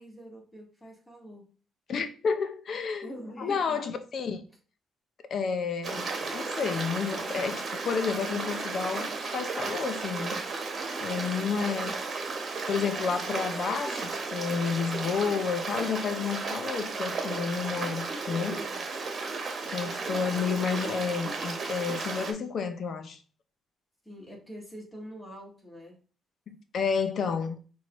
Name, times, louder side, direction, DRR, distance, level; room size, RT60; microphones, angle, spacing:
voice 1, 0.0-1.4 3.0-3.8 18.1-18.8 19.5-19.7 24.0-25.9, equal, 15° left, 2.1 m, -45 dB
voice 2, 1.9-3.1 3.4-4.4 5.3-10.4 11.0-11.9 12.7-18.6 19.7-23.2 26.5-27.6, left 6 dB, 55° left, 0.6 m, -31 dB
Stream, 5.8-22.3, right 4 dB, 45° right, 1.2 m, -34 dB
6.0 x 2.7 x 3.1 m
cardioid pair, 90°, 0 cm